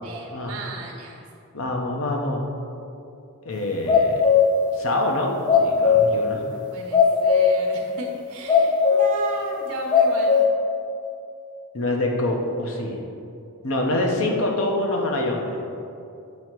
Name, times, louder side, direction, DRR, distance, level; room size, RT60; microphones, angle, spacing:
voice 1, 0.0-1.2 6.5-10.3, right 3 dB, 70° right, 0 dB, 1.0 m, -34 dB
voice 2, 1.5-2.5 3.4-4.3 4.7-6.4 11.7-13.0 13.6-15.6, left 1 dB, 60° left, 1 dB, 0.7 m, -25 dB
sound 1, 3.9-4.6 5.5-6.2 6.9-7.6 8.1-8.2 8.5-9.2 9.6-10.5, left 6 dB, 20° left, 0.4 m, -17 dB
7.6 x 2.8 x 4.5 m, 2.6 s
head